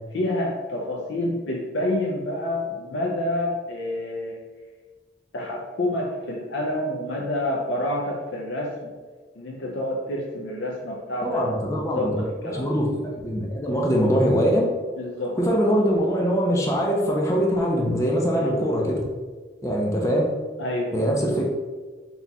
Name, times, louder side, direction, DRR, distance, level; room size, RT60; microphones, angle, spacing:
voice 1, 0.1-4.4 5.3-8.9 9.4-12.7 15.0-15.4 18.4-18.6 20.6-21.0, left 1 dB, 85° left, -2 dB, 0.5 m, -28 dB
voice 2, 11.2-12.2 12.5-14.7 15.4-19.1 19.6-20.3 20.9-21.5, equal, 15° left, -1 dB, 0.5 m, -22 dB
4.2 x 2.3 x 4.0 m, 1.4 s
head